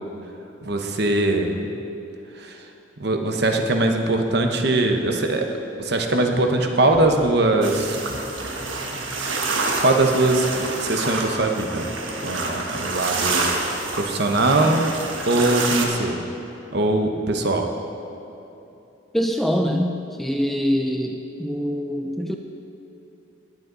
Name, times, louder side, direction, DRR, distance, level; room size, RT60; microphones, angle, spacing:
voice 1, 0.6-1.7 2.3-2.7 3.0-8.0 9.6-11.9 12.2-13.5 13.9-14.9 15.3-16.2 16.7-17.7, right 2 dB, 55° right, 3 dB, 1.0 m, -21 dB
sound 1, 6.9-9.6, right 1 dB, 30° right, 1.1 m, -41 dB
sound 2, 7.6-15.9, right 3 dB, 80° right, 1.3 m, -27 dB
voice 2, 19.1-22.4, equal, ahead, 3 dB, 0.4 m, -24 dB
19.0 x 8.1 x 3.9 m, 2.9 s
head